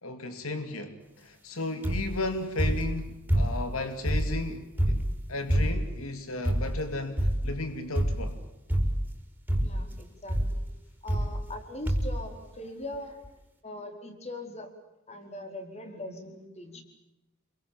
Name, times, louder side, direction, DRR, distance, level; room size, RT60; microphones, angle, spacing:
voice 1, 0.0-8.4, left 2 dB, 85° left, 2.6 m, -34 dB
sound 1, 1.8-2.2 2.6-3.7 4.0-6.0 6.4-6.9 7.2-7.6 8.0-8.4 8.7-9.2 9.5-9.9 10.3-10.6 11.1-11.6 11.9-12.2 12.9-13.0 13.2-13.3, equal, 10° right, 4.8 m, -27 dB
voice 2, 9.6-10.7 11.0-13.2 13.6-14.7 15.1-16.8, left 1 dB, 30° left, 4.6 m, -41 dB
28.0 x 24.0 x 7.5 m
head